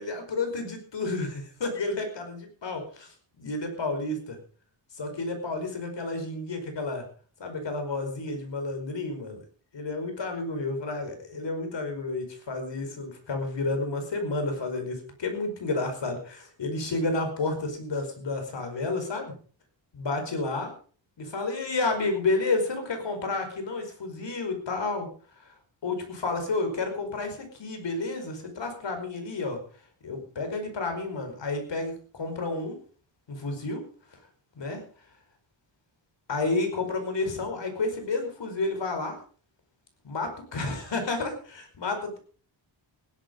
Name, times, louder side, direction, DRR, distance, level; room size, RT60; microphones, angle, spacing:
voice 1, 0.0-4.4 4.9-7.1 7.4-9.4 9.7-19.3 19.9-20.7 21.2-25.1 25.4-25.5 25.8-29.6 30.0-32.8 33.3-33.8 34.6-34.8 36.3-39.2 40.0-42.2, left 3 dB, 65° left, 6 dB, 5.1 m, -31 dB
16.0 x 12.0 x 5.3 m, 0.43 s
wide cardioid pair, 100°, 47 cm